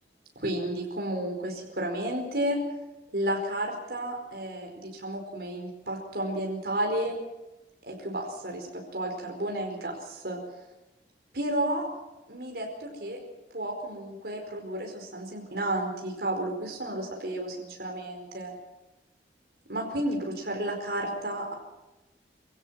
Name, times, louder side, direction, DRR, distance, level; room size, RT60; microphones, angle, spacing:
voice 1, 0.3-2.6 3.1-7.1 7.9-10.4 11.3-11.9 12.3-13.2 13.5-18.5 19.7-21.5, right 1 dB, 65° right, 2 dB, 4.8 m, -32 dB
26.5 x 17.5 x 7.6 m, 1.0 s
head